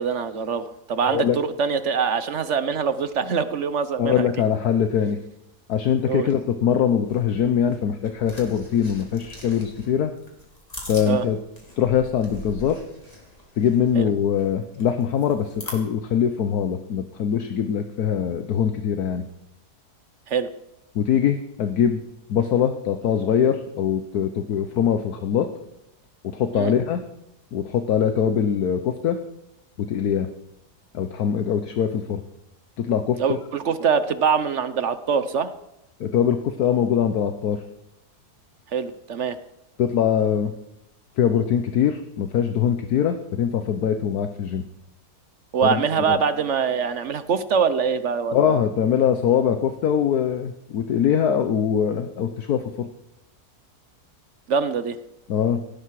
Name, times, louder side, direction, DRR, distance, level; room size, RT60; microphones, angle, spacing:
voice 1, 0.0-4.3 6.1-6.3 11.1-11.2 13.9-14.1 20.3-20.5 26.5-26.7 33.2-35.5 38.7-39.4 45.5-48.6 54.5-55.0, right 6 dB, 55° right, 13 dB, 1.0 m, -24 dB
voice 2, 4.0-5.2 5.7-10.1 10.9-11.4 11.8-12.8 13.6-19.2 20.9-22.0 22.3-25.5 26.3-27.0 27.5-29.2 29.8-30.3 30.9-32.2 32.8-33.2 36.0-37.6 39.8-40.5 41.2-44.6 45.6-45.8 46.1-46.2 48.3-52.9 55.3-55.6, left 8 dB, 70° left, 8 dB, 1.4 m, -22 dB
sound 1, 7.0-15.7, left 1 dB, 25° left, 3.5 m, -42 dB
18.0 x 16.0 x 4.8 m, 0.88 s
omnidirectional pair, 1.7 m